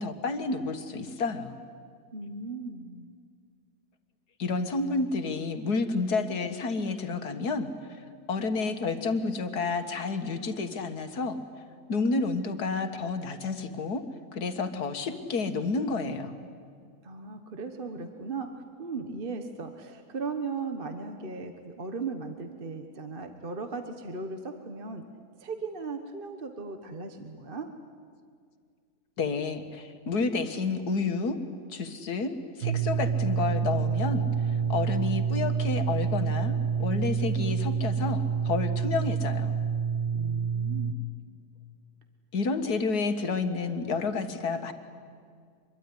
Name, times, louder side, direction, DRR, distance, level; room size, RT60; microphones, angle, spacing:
voice 1, 0.0-1.6 4.4-7.7 8.3-11.4 11.9-14.0 14.3-16.4 29.2-31.4 31.7-36.5 36.8-39.5 42.3-44.7, left 4 dB, 75° left, 8 dB, 2.1 m, -30 dB
voice 2, 2.1-3.1 17.0-25.1 25.4-27.7 40.1-41.0, right 4 dB, 35° right, 6 dB, 1.4 m, -37 dB
sound 1, 32.6-40.9, right 6 dB, 75° right, 1.7 m, -28 dB
25.0 x 22.5 x 9.9 m, 2.1 s
omnidirectional pair, 1.7 m